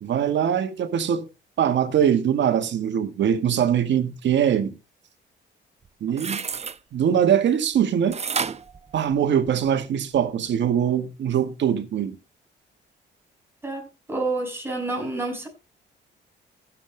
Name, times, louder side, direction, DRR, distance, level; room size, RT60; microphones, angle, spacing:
voice 1, 0.0-1.3 1.6-4.8 6.0-6.4 6.9-8.2 8.9-12.2, right 9 dB, 65° right, 1.8 m, -22 dB
sound 1, 5.8-6.8 8.1-9.7 10.1-10.2, right 6 dB, 35° right, 0.8 m, -30 dB
voice 2, 13.6-15.5, right 2 dB, 10° right, 6.9 m, -29 dB
16.0 x 7.6 x 3.5 m
cardioid pair, 90°, 20 cm